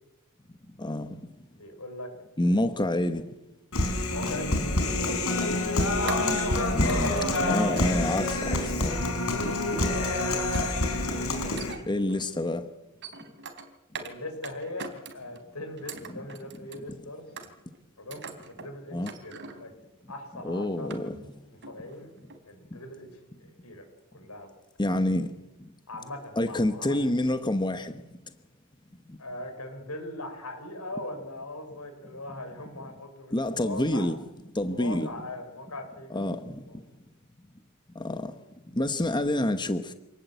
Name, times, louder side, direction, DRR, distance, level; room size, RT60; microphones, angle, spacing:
voice 1, 0.8-1.2 2.4-3.3 6.7-7.1 7.5-9.0 11.9-12.6 18.9-19.1 20.4-21.1 24.8-25.3 26.4-27.9 33.3-34.2 34.5-35.1 36.1-36.5 37.9-38.3 38.7-39.9, left 1 dB, 20° left, 1.1 m, -27 dB
voice 2, 1.5-2.1 4.1-5.3 5.8-7.7 8.9-9.1 14.0-17.3 18.0-19.0 19.2-19.7 20.1-21.0 21.5-22.1 22.5-23.8 24.1-24.5 25.9-27.0 29.2-34.1 34.6-36.3 36.7-36.8, left 1 dB, 85° left, 6.4 m, -40 dB
Human voice, 3.7-11.7, left 2 dB, 70° left, 5.6 m, -27 dB
sound 1, 6.1-9.0 10.1-11.0 11.4-12.3 12.8-14.2 14.4-15.4 15.8-16.9 17.4-17.8 18.1-18.7 19.1-19.7 20.2-20.3 20.6-21.4 21.6-21.9 22.3-22.4, right 5 dB, 55° right, 3.5 m, -43 dB
27.5 x 19.0 x 8.2 m
head